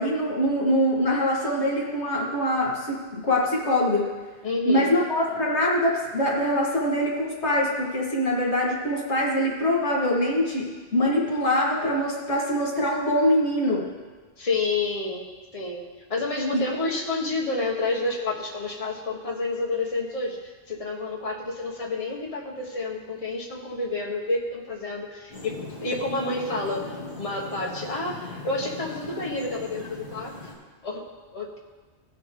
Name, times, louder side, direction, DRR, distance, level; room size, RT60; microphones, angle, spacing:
voice 1, 0.0-4.1 4.7-13.8 16.7-16.8, left 1 dB, 75° left, -3 dB, 2.1 m, -24 dB
voice 2, 4.4-4.9 14.4-15.2 15.5-15.8 16.1-30.3 30.8-31.0 31.3-31.6, left 2 dB, 30° left, -2 dB, 1.3 m, -29 dB
sound 1, 25.3-30.5, left 3 dB, 60° left, 3.0 m, -39 dB
17.0 x 5.7 x 3.7 m, 1.4 s
omnidirectional pair, 1.2 m